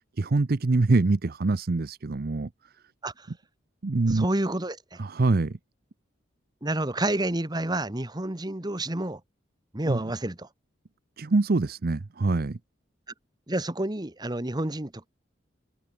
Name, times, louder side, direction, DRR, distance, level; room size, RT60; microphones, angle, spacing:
voice 1, 0.2-2.5 3.8-4.3 5.0-5.6 9.9-10.1 11.2-12.6, right 3 dB, 50° right, 0.6 m, -24 dB
voice 2, 4.1-4.8 6.6-9.2 9.7-10.5 13.5-15.1, right 1 dB, 20° right, 1.4 m, -29 dB
head